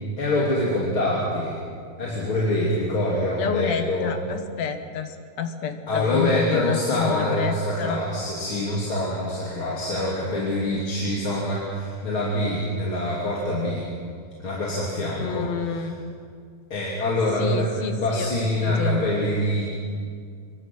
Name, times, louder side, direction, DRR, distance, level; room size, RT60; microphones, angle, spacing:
voice 1, 0.2-1.6 2.0-4.1 5.9-13.9 14.4-15.9 16.7-19.7, left 1 dB, 45° left, -5 dB, 3.7 m, -25 dB
voice 2, 3.4-8.0 15.2-16.0 17.4-18.3 18.6-19.1, left 6 dB, 70° left, 7 dB, 2.5 m, -29 dB
26.0 x 22.5 x 6.1 m, 2.2 s
omnidirectional pair, 3.3 m